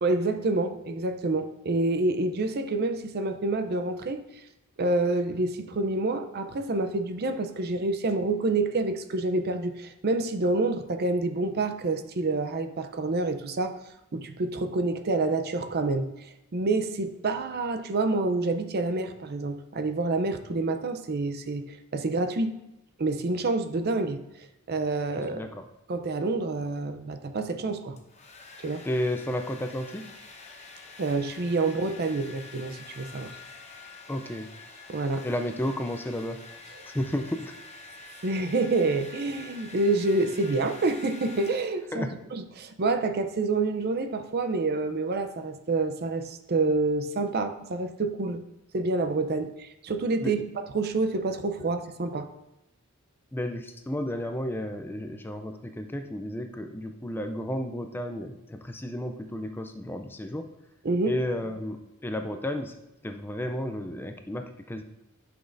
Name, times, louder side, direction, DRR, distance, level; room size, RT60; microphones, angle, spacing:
voice 1, 0.0-4.2 4.8-13.8 14.1-16.1 16.5-21.7 21.9-22.5 23.0-24.2 24.7-25.5 25.9-28.0 28.6-28.8 31.0-33.4 34.9-35.3 38.2-48.4 48.7-50.4 50.7-52.3 60.8-61.1, right 3 dB, 45° right, 9 dB, 0.5 m, -27 dB
voice 2, 25.3-25.7 28.9-30.1 34.1-34.5 35.2-36.4 36.9-37.5 41.9-42.1 50.2-50.3 51.6-51.7 53.3-60.5 61.0-62.8 63.0-64.8, left 1 dB, 10° left, 6 dB, 0.4 m, -32 dB
Domestic sounds home sounds, 27.7-42.0, left 3 dB, 30° left, 0.9 m, -47 dB
11.0 x 6.1 x 2.6 m, 0.92 s
head